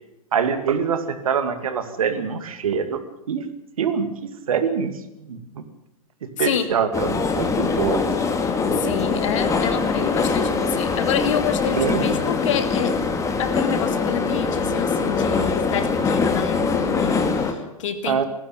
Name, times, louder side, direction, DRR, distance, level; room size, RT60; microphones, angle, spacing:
voice 1, 0.3-3.0 3.3-3.5 3.8-4.1 4.5-4.9 5.3-5.6 6.2-8.1 11.8-12.0 18.1-18.2, right 7 dB, 65° right, 10 dB, 2.3 m, -24 dB
voice 2, 6.4-6.7 8.6-13.0 13.4-18.2, left 8 dB, 55° left, 9 dB, 2.5 m, -27 dB
sound 1, 6.9-17.5, left 4 dB, 15° left, 2.3 m, -23 dB
19.0 x 15.5 x 9.2 m, 0.88 s
figure-of-eight pair, 100°, 19 cm